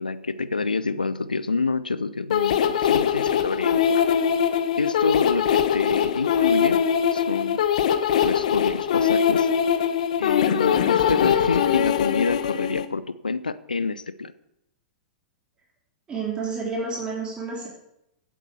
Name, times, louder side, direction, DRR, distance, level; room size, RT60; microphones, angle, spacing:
voice 1, 0.0-4.0 4.8-6.8 7.1-7.6 8.2-9.5 10.2-14.3, left 4 dB, 80° left, 15 dB, 0.8 m, -27 dB
sound 1, 2.3-12.9, left 8 dB, 60° left, 1.2 m, -22 dB
voice 2, 16.1-17.7, right 4 dB, 20° right, -3 dB, 3.7 m, -30 dB
16.5 x 8.6 x 7.0 m, 0.84 s
figure-of-eight pair, 100°, 5 cm